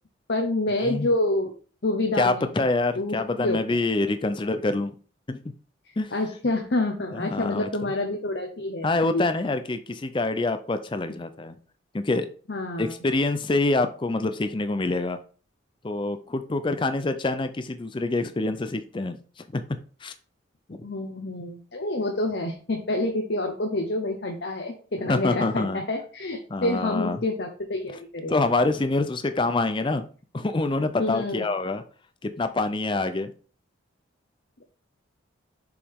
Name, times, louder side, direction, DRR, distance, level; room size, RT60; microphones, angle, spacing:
voice 1, 0.3-1.5 1.8-2.5 2.9-3.6 5.9-9.2 12.5-12.9 20.8-28.4 31.0-31.4, left 2 dB, 55° left, 3 dB, 0.9 m, -28 dB
voice 2, 2.2-4.9 5.3-5.4 6.0-6.1 7.1-7.7 8.8-11.6 11.9-12.3 12.8-15.2 15.8-19.6 20.0-20.1 20.7-20.8 25.1-25.8 26.5-27.2 28.3-30.0 30.3-31.8 32.2-33.3, left 2 dB, 25° left, 9 dB, 0.4 m, -26 dB
7.0 x 4.9 x 3.6 m, 0.40 s
head